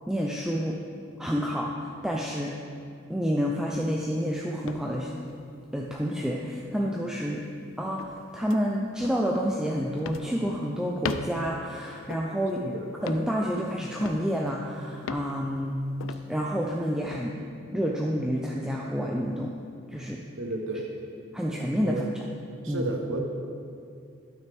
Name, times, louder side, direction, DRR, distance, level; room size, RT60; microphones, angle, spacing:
voice 1, 0.1-0.8 1.2-2.6 3.1-5.1 5.7-7.4 7.8-12.6 13.0-15.8 16.3-17.4 17.7-19.5 19.9-20.2 21.3-22.0 22.7-22.9, equal, 5° right, -3 dB, 0.4 m, -29 dB
sound 1, 3.7-4.1 4.6-5.5 5.9-6.0 6.8-7.2 8.0-8.2 8.5-8.6 9.0-9.2 10.0-10.4 11.0-11.5 12.1-12.5 13.0-13.4 14.0-14.5 15.0-15.4 16.0-16.3 17.0-17.2, left 5 dB, 85° left, 0.4 m, -38 dB
voice 2, 20.4-20.9 21.8-22.1 22.6-23.2, right 2 dB, 75° right, 3 dB, 0.9 m, -31 dB
12.0 x 6.3 x 3.4 m, 2.4 s
head